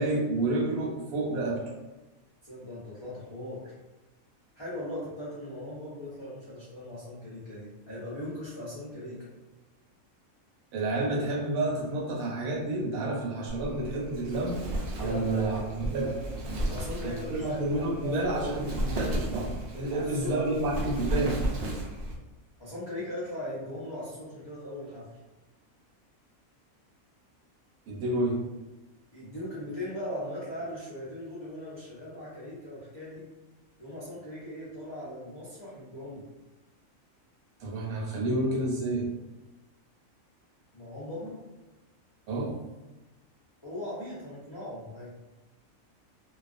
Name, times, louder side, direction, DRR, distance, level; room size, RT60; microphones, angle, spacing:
voice 1, 0.0-1.6 10.7-14.6 15.0-16.1 17.0-21.4 27.9-28.4 37.6-39.1 42.3-42.6, right 2 dB, 85° right, -1 dB, 1.1 m, -30 dB
voice 2, 2.4-3.7 4.6-9.3 15.0-15.6 15.9-16.2 16.7-18.8 19.9-20.4 22.6-25.1 29.1-33.2 33.8-36.3 40.7-41.4 43.6-45.1, left 1 dB, 40° left, -9 dB, 0.3 m, -39 dB
Wind, 13.5-22.2, right 1 dB, 60° right, 0.6 m, -34 dB
2.3 x 2.3 x 2.4 m, 1.1 s
omnidirectional pair, 1.4 m